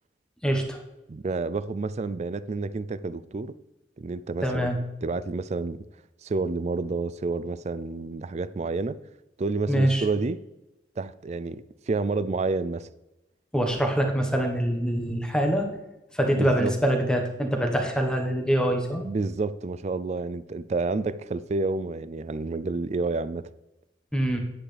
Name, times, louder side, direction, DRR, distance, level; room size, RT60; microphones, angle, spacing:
voice 1, 0.4-0.8 4.4-4.8 9.7-10.0 13.5-15.7 16.1-19.0 24.1-24.4, right 1 dB, 5° left, 1.2 m, -24 dB
voice 2, 1.1-3.5 4.0-5.8 6.2-9.0 9.4-10.4 11.0-12.9 16.4-16.8 19.0-23.5, right 3 dB, 35° right, 0.4 m, -29 dB
9.8 x 8.6 x 3.4 m
head